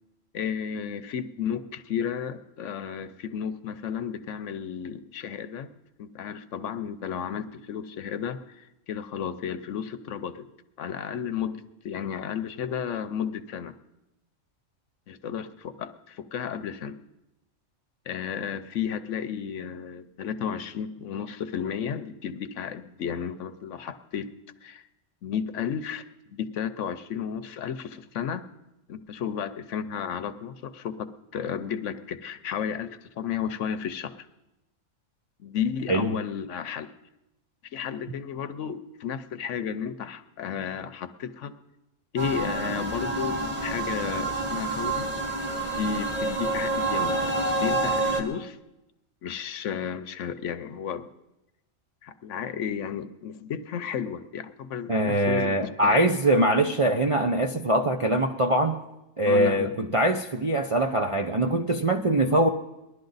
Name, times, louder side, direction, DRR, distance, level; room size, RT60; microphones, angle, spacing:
voice 1, 0.3-5.7 6.0-10.4 10.8-13.8 15.1-17.0 18.0-24.3 24.6-24.9 25.2-26.0 26.3-28.4 28.9-34.3 35.4-36.9 37.7-41.5 42.1-45.1 45.8-48.6 49.2-51.1 52.0-55.5 55.8-56.1 59.2-59.7 62.2-62.3, left 8 dB, 70° left, 11 dB, 1.0 m, -33 dB
sound 1, 42.2-48.2, right 2 dB, 10° right, 1.9 m, -28 dB
voice 2, 54.9-58.8 59.2-62.5, right 1 dB, 45° right, 2 dB, 0.4 m, -23 dB
20.0 x 11.5 x 4.0 m, 0.95 s
omnidirectional pair, 1.4 m